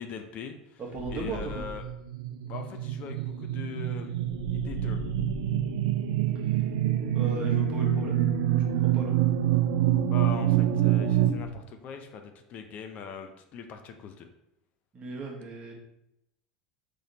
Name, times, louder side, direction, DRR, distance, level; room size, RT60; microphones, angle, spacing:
voice 1, 0.0-0.8 1.1-1.8 2.5-4.2 4.5-5.0 10.0-14.3, left 6 dB, 45° left, 6 dB, 0.6 m, -41 dB
voice 2, 0.8-1.7 6.5-6.6 7.1-8.2 8.8-9.2 14.9-15.7, right 3 dB, 35° right, 0 dB, 1.3 m, -36 dB
sound 1, 1.0-2.0 4.2-5.8 10.0-11.6, left 1 dB, 30° left, 1.3 m, -42 dB
sound 2, 1.5-11.3, right 11 dB, 75° right, 0.5 m, -26 dB
4.1 x 3.3 x 4.0 m, 0.83 s
hypercardioid pair, 95°, 3 cm